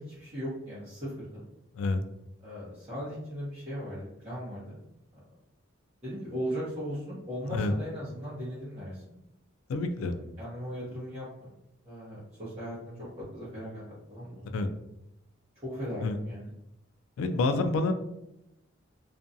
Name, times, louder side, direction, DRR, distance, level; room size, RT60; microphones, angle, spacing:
voice 1, 0.0-1.4 2.4-4.8 6.0-9.0 10.0-10.1 10.4-11.5 11.8-12.9 13.3-14.6 15.6-16.5, equal, 30° right, -11 dB, 0.8 m, -38 dB
voice 2, 9.7-10.2 14.5-14.7 16.0-16.2 17.2-17.9, left 3 dB, 80° left, 8 dB, 0.3 m, -28 dB
2.5 x 2.2 x 2.6 m, 0.85 s
head